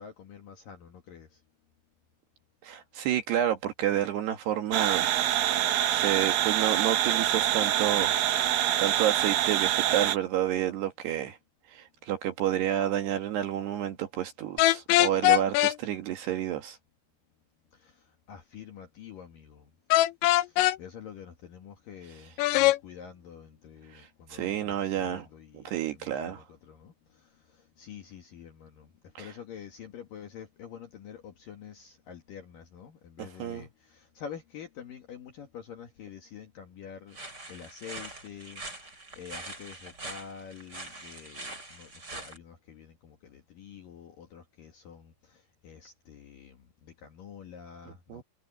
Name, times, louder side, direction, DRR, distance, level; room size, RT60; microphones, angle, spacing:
voice 1, 0.0-1.4 17.7-19.7 20.4-37.2 37.5-38.6 39.1-48.2, left 8 dB, 60° left, 2.6 m, -47 dB
voice 2, 2.6-5.1 5.9-8.1 8.5-11.4 11.7-16.8 23.9-24.0 24.3-25.3 25.5-26.4 29.2-29.3 33.2-33.7 48.1-48.2, right 11 dB, 65° right, 3.2 m, -30 dB
sound 1, 4.7-10.2, right 12 dB, 85° right, 2.0 m, -26 dB
sound 2, 14.6-15.8 19.9-20.8 22.4-22.8, left 16 dB, 85° left, 3.4 m, -21 dB
sound 3, 37.1-42.4, right 2 dB, 20° right, 6.8 m, -43 dB
omnidirectional pair, 5.9 m